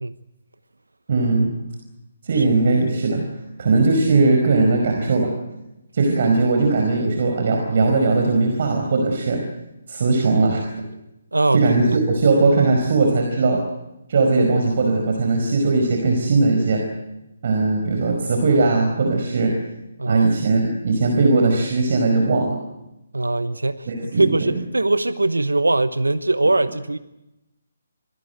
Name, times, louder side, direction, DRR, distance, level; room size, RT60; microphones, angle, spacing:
voice 1, 1.1-1.5 2.2-3.2 3.6-5.3 5.9-9.4 9.9-10.6 11.5-13.6 14.1-16.8 17.4-19.5 20.0-22.6 23.9-24.6, right 3 dB, 50° right, 3 dB, 5.0 m, -19 dB
voice 2, 11.3-11.6 20.0-20.3 23.1-27.0, right 2 dB, 80° right, 13 dB, 1.0 m, -21 dB
27.0 x 20.0 x 8.0 m, 0.94 s
figure-of-eight pair, 140°, 0 cm